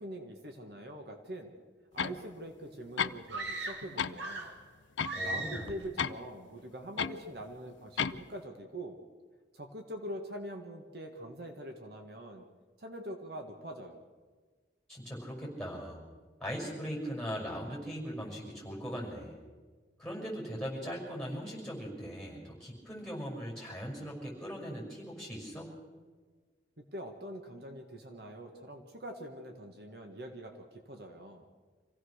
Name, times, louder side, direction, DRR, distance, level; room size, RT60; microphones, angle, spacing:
voice 1, 0.0-1.5 1.9-4.5 5.2-9.0 9.5-12.4 12.8-14.0 26.8-31.5, right 1 dB, 55° right, 4 dB, 1.7 m, -44 dB
sound 1, 2.0-2.2 3.0-3.5 3.8-4.2 5.0-6.1 7.0-7.2 8.0-8.3, left 7 dB, 90° left, 0.7 m, -33 dB
sound 2, 3.3-4.6 5.0-5.8, right 2 dB, 80° right, 2.4 m, -38 dB
voice 2, 5.1-5.7 14.9-16.0 16.4-19.4 20.0-25.8, equal, 5° left, -2 dB, 6.0 m, -40 dB
26.0 x 16.5 x 6.5 m, 1.4 s
head